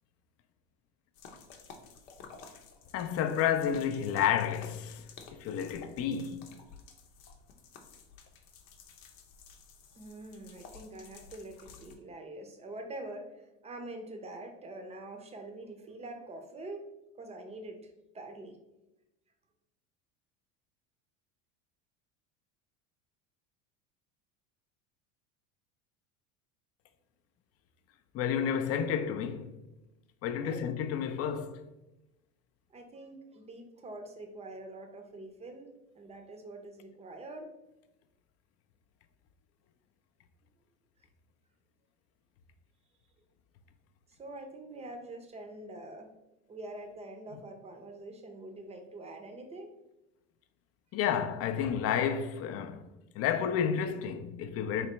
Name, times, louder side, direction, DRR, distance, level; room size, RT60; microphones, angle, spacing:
sound 1, 1.1-12.0, left 5 dB, 85° left, 0.8 m, -53 dB
voice 1, 2.9-5.0 5.4-6.5 28.1-29.6 30.2-31.6 50.9-52.8 53.1-54.9, left 8 dB, 40° left, 0.4 m, -30 dB
voice 2, 9.9-16.9 17.2-18.6 30.4-30.7 32.7-35.7 35.9-37.5 44.1-46.1 46.5-49.7, right 2 dB, 15° right, 0.6 m, -45 dB
4.1 x 3.3 x 2.9 m
supercardioid pair, 110°, 37 cm